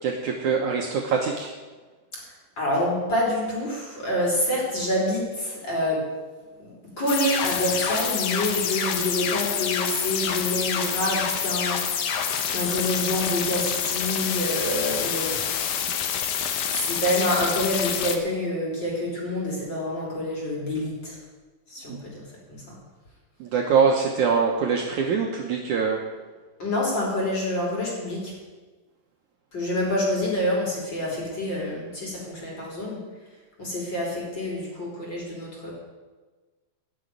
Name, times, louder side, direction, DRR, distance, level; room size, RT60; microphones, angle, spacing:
voice 1, 0.0-1.5 21.9-22.0 23.4-26.0, right 5 dB, 85° right, 0 dB, 1.7 m, -23 dB
voice 2, 2.6-6.0 6.6-15.5 16.7-21.2 21.7-22.8 26.6-28.3 29.5-33.0 33.6-35.7, left 1 dB, 25° left, -3 dB, 3.6 m, -27 dB
sound 1, 7.1-18.2, left 8 dB, 70° left, 2.4 m, -27 dB
15.5 x 6.4 x 9.5 m, 1.3 s
omnidirectional pair, 5.1 m